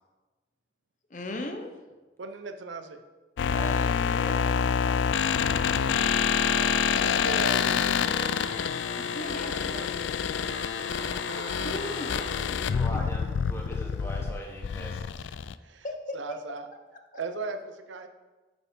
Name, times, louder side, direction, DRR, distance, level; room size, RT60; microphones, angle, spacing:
voice 1, 1.1-1.7 9.0-9.9 11.3-12.8 15.8-16.4, left 1 dB, 45° left, 5 dB, 0.9 m, -37 dB
voice 2, 2.2-3.0 6.5-8.5 9.4-10.3 15.6-15.9 16.1-16.7 17.1-18.1, right 3 dB, 85° right, 7 dB, 0.7 m, -38 dB
sound 1, 3.4-15.5, left 7 dB, 85° left, 0.4 m, -27 dB
voice 3, 3.5-5.8 11.2-11.7 12.7-15.0, equal, 15° left, 0 dB, 1.3 m, -41 dB
sound 2, 6.0-12.4, right 2 dB, 60° right, 3.0 m, -44 dB
8.8 x 6.8 x 4.5 m, 1.2 s
head